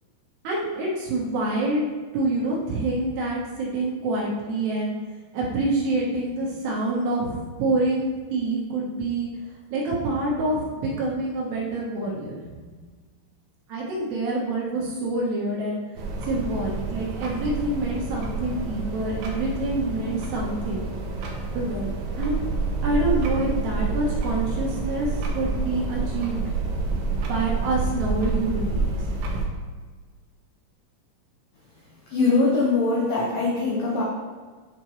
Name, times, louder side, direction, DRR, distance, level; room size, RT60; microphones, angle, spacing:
voice 1, 0.4-1.9 2.1-4.9 5.3-9.3 9.7-12.4 13.7-15.8 16.3-20.9 21.5-22.4 22.8-25.1 25.3-26.4 27.3-29.0, right 2 dB, 70° right, -5 dB, 3.0 m, -26 dB
sound 1, 16.0-29.5, right 3 dB, 90° right, 2.0 m, -28 dB
voice 2, 32.1-34.0, left 3 dB, 90° left, -5 dB, 1.9 m, -22 dB
10.5 x 4.5 x 3.1 m, 1.4 s
omnidirectional pair, 5.5 m